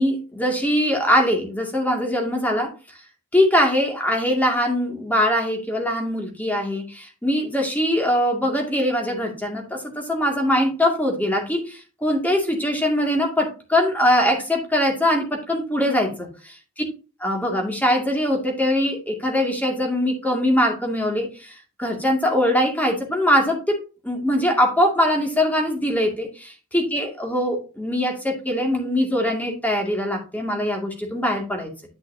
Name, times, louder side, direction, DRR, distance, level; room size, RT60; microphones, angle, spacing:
voice 1, 0.0-2.7 3.3-16.3 17.2-21.5 21.8-23.8 24.0-31.7, left 1 dB, 10° left, 1 dB, 2.2 m, -22 dB
11.0 x 6.0 x 2.8 m, 0.33 s
head